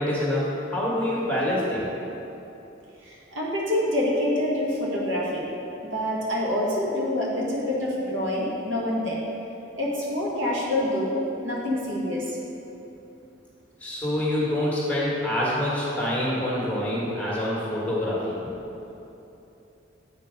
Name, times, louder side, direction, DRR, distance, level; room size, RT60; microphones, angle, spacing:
voice 1, 0.0-1.9 13.8-18.4, left 1 dB, 10° left, -7 dB, 1.5 m, -26 dB
voice 2, 3.0-5.5 5.9-9.2 9.7-11.1 11.4-12.4, left 1 dB, 80° right, -4 dB, 1.5 m, -26 dB
8.3 x 4.6 x 5.1 m, 3.0 s
head